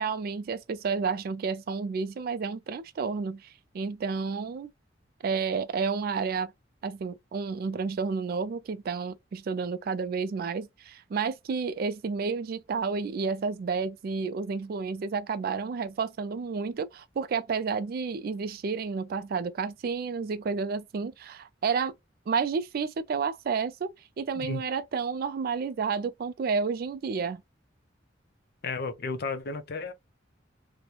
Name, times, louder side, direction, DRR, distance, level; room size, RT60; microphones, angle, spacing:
voice 1, 0.0-4.7 5.2-6.5 6.8-21.9 22.3-23.9 24.2-27.4, right 5 dB, 50° right, 0.3 m, -31 dB
voice 2, 28.6-29.9, left 4 dB, 55° left, 0.5 m, -33 dB
2.9 x 2.1 x 2.3 m
head